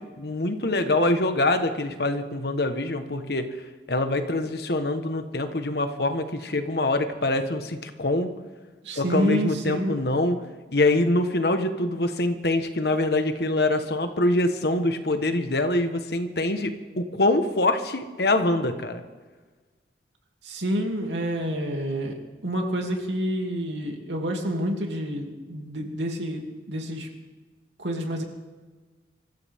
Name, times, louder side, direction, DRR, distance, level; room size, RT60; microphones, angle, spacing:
voice 1, 0.0-3.5 3.9-8.3 8.9-10.4 10.7-19.0, left 2 dB, 60° left, 8 dB, 1.3 m, -24 dB
voice 2, 8.8-10.0 20.4-22.1 22.4-27.1 27.8-28.2, equal, 90° right, 1 dB, 2.8 m, -28 dB
25.0 x 14.5 x 3.7 m, 1.4 s
head